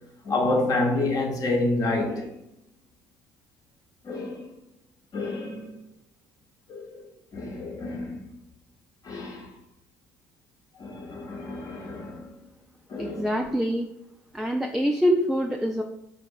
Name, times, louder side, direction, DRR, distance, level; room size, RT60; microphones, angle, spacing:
voice 1, 0.2-2.3 4.0-4.5 5.1-5.7 6.7-7.0 7.3-8.2 9.0-9.5 10.8-12.3 12.9-13.3, left 2 dB, 50° left, 1.0 m, -28 dB
voice 2, 13.0-13.9 14.3-15.8, equal, 5° right, 0.4 m, -25 dB
4.0 x 2.4 x 3.8 m
hypercardioid pair, 55°, 8 cm